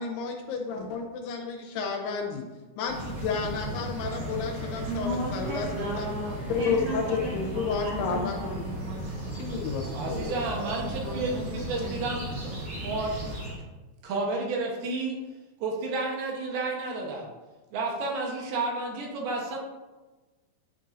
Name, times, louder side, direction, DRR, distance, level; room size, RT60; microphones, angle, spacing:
voice 1, 0.0-2.5 2.8-6.1 6.5-8.7 9.4-10.4, left 5 dB, 80° left, 1 dB, 3.0 m, -31 dB
sound 1, 2.8-13.6, right 1 dB, 35° right, 1.5 m, -36 dB
voice 2, 4.8-9.3 11.0-11.5 11.8-12.0, equal, 60° right, -4 dB, 2.3 m, -35 dB
voice 3, 9.8-12.5 12.8-13.4 14.0-15.2 15.6-17.3 17.7-19.6, right 3 dB, 75° right, 0 dB, 2.9 m, -31 dB
9.8 x 5.6 x 2.6 m, 1.2 s
omnidirectional pair, 4.6 m